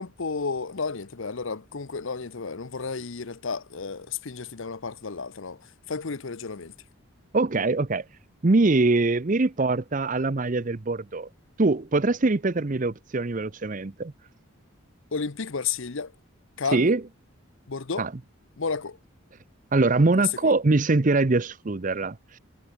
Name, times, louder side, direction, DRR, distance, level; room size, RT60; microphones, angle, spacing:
voice 1, 0.0-5.6 5.9-6.7 15.1-16.1 16.6-16.9 17.7-18.1 18.6-19.0 20.2-20.5, left 5 dB, 65° left, 0.9 m, -32 dB
voice 2, 7.3-8.0 8.4-11.3 11.6-14.1 16.7-17.0 18.0-18.1 19.7-22.4, right 3 dB, 35° right, 0.6 m, -23 dB
head